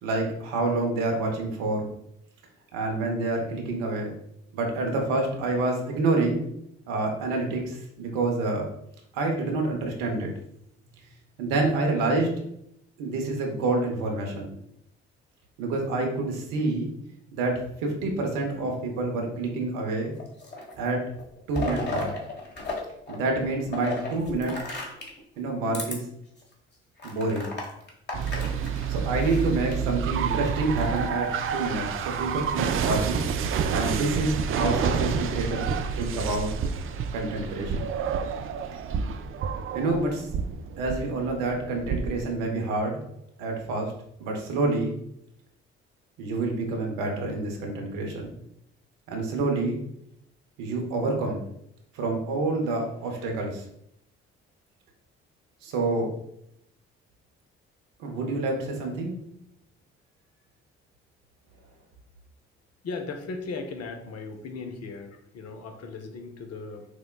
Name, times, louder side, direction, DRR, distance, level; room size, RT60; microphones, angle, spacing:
voice 1, 0.0-1.9 2.7-4.1 4.5-6.5 6.9-8.7 9.1-10.3 11.4-12.3 13.0-14.6 15.6-16.9 17.3-20.1 20.8-21.0 21.5-22.1 23.1-24.5 25.4-26.0 27.0-27.5 28.9-31.9 32.2-33.3 33.7-35.7 35.9-36.5 37.1-37.9 39.7-40.3 40.8-43.0 43.4-43.9 44.2-44.9 46.2-48.4 49.1-49.8 50.6-51.4 51.9-53.6 55.6-56.1 58.0-59.2, right 2 dB, 75° right, 1 dB, 0.8 m, -27 dB
sound 1, 20.1-20.8 21.2-22.8 23.1-25.2 25.7-25.9 26.4-26.5 27.0-29.8 30.6-31.2, left 2 dB, 35° left, 1.3 m, -34 dB
sound 2, 28.1-42.3, right 6 dB, 40° right, 0.4 m, -29 dB
voice 2, 62.8-66.9, left 4 dB, 50° left, 6 dB, 0.7 m, -37 dB
5.9 x 2.2 x 2.3 m, 0.75 s
hypercardioid pair, 45°, 32 cm